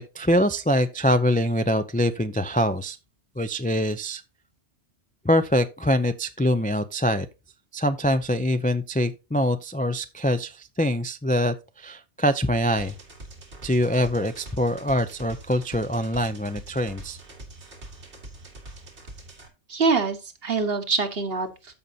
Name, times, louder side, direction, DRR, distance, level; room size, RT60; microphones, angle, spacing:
voice 1, 0.0-3.0 3.4-4.2 5.2-7.3 7.7-13.0 13.6-17.2, equal, 15° left, 0.3 m, -24 dB
sound 1, 12.8-19.5, right 2 dB, 80° right, 2.4 m, -44 dB
voice 2, 19.7-21.7, right 4 dB, 60° right, 1.4 m, -25 dB
14.0 x 5.3 x 2.8 m
omnidirectional pair, 1.1 m